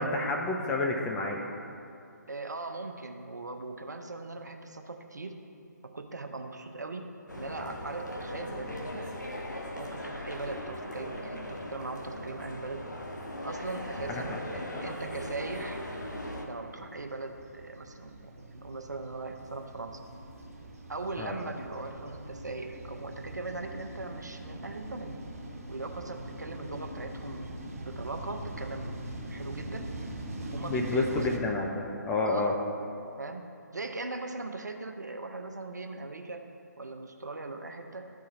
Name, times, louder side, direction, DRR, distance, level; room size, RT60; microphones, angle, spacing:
voice 1, 0.0-1.5 14.1-14.4 14.7-14.9 21.2-21.4 30.6-32.5, left 2 dB, 10° left, 0 dB, 0.3 m, -30 dB
voice 2, 2.3-5.4 5.8-7.1 7.3-9.1 9.8-12.9 13.4-15.8 16.4-20.0 20.9-25.1 25.7-27.6 27.9-29.0 29.3-29.9 30.5-31.3 32.2-32.6 33.2-33.4 33.7-36.5 36.8-38.1, right 3 dB, 65° right, 5 dB, 0.8 m, -39 dB
sound 1, 7.3-16.5, left 1 dB, 75° left, 1.1 m, -39 dB
sound 2, 14.7-31.4, right 1 dB, 50° right, 1.3 m, -42 dB
13.0 x 4.8 x 4.1 m, 2.5 s
figure-of-eight pair, 140°, 10 cm